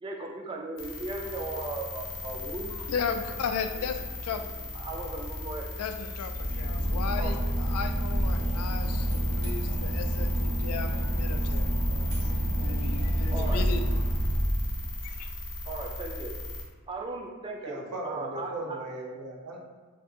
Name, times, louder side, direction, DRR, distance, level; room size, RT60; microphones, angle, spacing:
voice 1, 0.0-2.7 3.7-3.8 4.7-5.6 7.2-7.3 13.3-13.6 15.7-16.3 16.9-18.8, right 3 dB, 20° right, 0 dB, 0.3 m, -37 dB
sound 1, 0.8-16.6, left 2 dB, 55° left, 0.7 m, -38 dB
voice 2, 2.7-4.6 5.8-13.8 15.0-15.3, left 6 dB, 75° left, 7 dB, 0.3 m, -36 dB
Boat Water vehicle / Engine, 6.3-15.2, equal, 65° right, 0.8 m, -28 dB
voice 3, 17.6-19.6, right 1 dB, 90° right, -1 dB, 0.6 m, -37 dB
2.6 x 2.4 x 3.6 m, 1.4 s
head